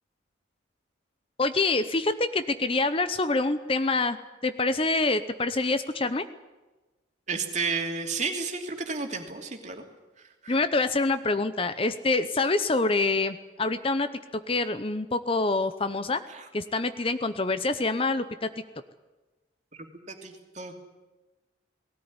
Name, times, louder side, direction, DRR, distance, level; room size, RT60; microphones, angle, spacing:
voice 1, 1.4-4.2 4.4-6.3 10.5-16.2 16.5-18.5, left 3 dB, 30° left, 11 dB, 0.7 m, -26 dB
voice 2, 7.3-9.8 10.2-10.6 16.3-16.5 19.8-20.8, right 4 dB, 40° right, 4 dB, 2.8 m, -32 dB
19.5 x 17.5 x 9.7 m, 1.2 s
head